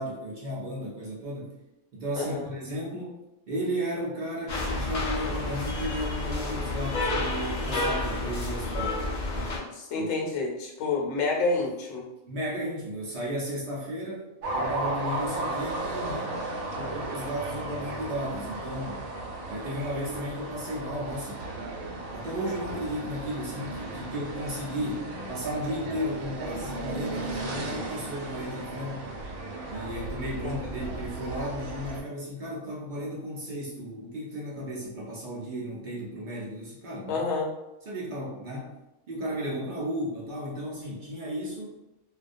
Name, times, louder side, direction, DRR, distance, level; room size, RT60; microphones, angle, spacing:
voice 1, 0.0-1.5 1.9-3.2 3.5-9.0 9.3-9.6 9.9-10.1 12.3-14.3 14.5-16.4 16.7-19.1 19.5-21.5 22.1-29.1 29.7-37.2 37.9-38.8 39.1-41.8, equal, 55° right, -5 dB, 0.5 m, -34 dB
sound 1, 4.5-9.6, left 2 dB, 55° left, 0.5 m, -30 dB
voice 2, 9.7-12.0 30.4-30.5 37.1-37.5, left 3 dB, 70° left, -2 dB, 1.0 m, -28 dB
sound 2, 14.4-32.0, right 2 dB, 85° right, 1.0 m, -35 dB
2.4 x 2.2 x 2.5 m, 0.96 s
omnidirectional pair, 1.5 m